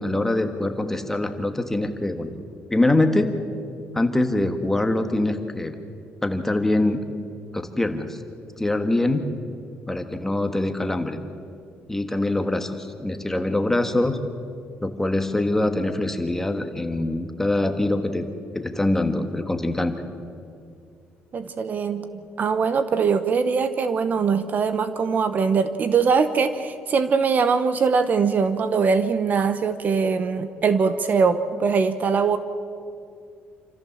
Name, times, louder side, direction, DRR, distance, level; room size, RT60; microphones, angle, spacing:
voice 1, 0.0-2.4 2.7-3.4 3.9-5.8 6.2-7.0 7.5-8.2 8.6-9.3 9.9-11.2 11.9-14.2 14.8-18.3 18.5-20.0, left 2 dB, 10° left, 6 dB, 1.5 m, -24 dB
voice 2, 21.3-32.4, right 5 dB, 45° right, 11 dB, 0.9 m, -22 dB
27.0 x 14.5 x 7.2 m, 2.4 s
cardioid pair, 125°, 4 cm